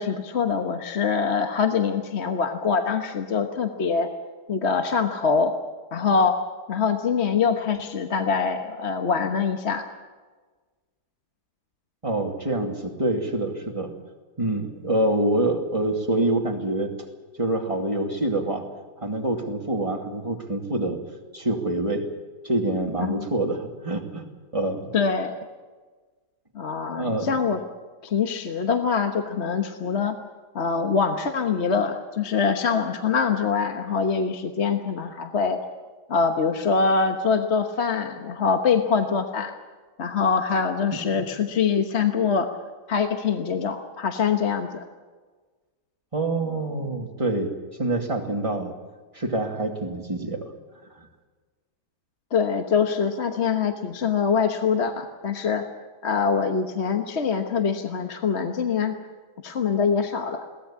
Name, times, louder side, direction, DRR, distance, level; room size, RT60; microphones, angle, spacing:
voice 1, 0.0-4.1 4.5-5.5 5.9-6.4 6.7-9.8 23.0-23.3 24.9-25.3 26.5-27.6 28.0-30.2 30.5-35.6 36.1-39.5 40.0-42.5 42.9-44.8 52.3-55.6 56.0-58.9 59.4-60.5, left 5 dB, 45° left, 5 dB, 1.4 m, -24 dB
voice 2, 12.0-13.9 14.4-16.9 17.4-18.7 19.0-21.0 21.3-22.1 22.4-24.2 24.5-24.9 27.0-27.3 46.1-47.5 47.8-48.7 49.1-50.5, right 1 dB, 20° right, 2 dB, 2.5 m, -26 dB
22.0 x 17.5 x 8.6 m, 1.4 s
omnidirectional pair, 1.7 m